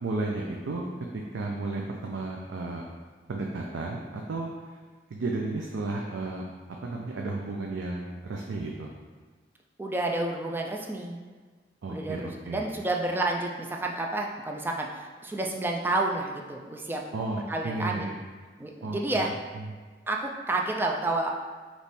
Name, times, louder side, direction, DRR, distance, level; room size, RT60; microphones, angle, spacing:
voice 1, 0.0-0.8 1.1-2.9 3.3-4.8 5.1-6.4 6.8-8.9 11.8-12.7 17.1-18.2 18.8-19.2 19.5-19.6, right 2 dB, 85° right, 0 dB, 0.4 m, -33 dB
voice 2, 9.8-11.2 11.9-17.0 17.5-18.1 18.6-19.4 20.1-21.3, right 2 dB, 10° right, 1 dB, 0.3 m, -30 dB
3.4 x 3.0 x 4.1 m, 1.4 s
head